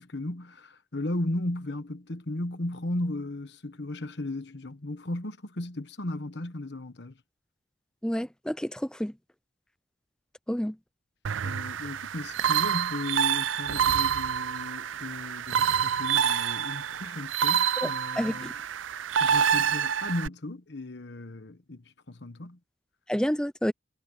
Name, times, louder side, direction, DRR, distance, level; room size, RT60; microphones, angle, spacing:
voice 1, 0.0-7.1 11.4-18.5 19.2-22.6, left 1 dB, 60° left, 1.2 m, -35 dB
voice 2, 8.0-9.1 10.5-10.8 17.8-17.9 18.2-18.5 23.1-23.7, equal, 5° left, 0.6 m, -29 dB
sound 1, 11.2-20.3, right 8 dB, 80° right, 0.5 m, -27 dB
head